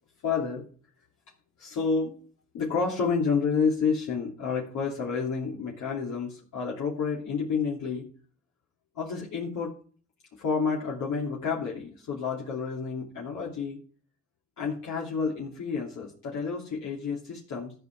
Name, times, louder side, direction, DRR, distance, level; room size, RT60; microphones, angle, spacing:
voice 1, 0.2-0.6 1.6-2.1 2.5-8.0 8.9-9.8 10.3-13.8 14.6-17.7, left 5 dB, 75° left, -3 dB, 2.8 m, -29 dB
13.0 x 5.5 x 7.0 m, 0.43 s
cardioid pair, 90°, 30 cm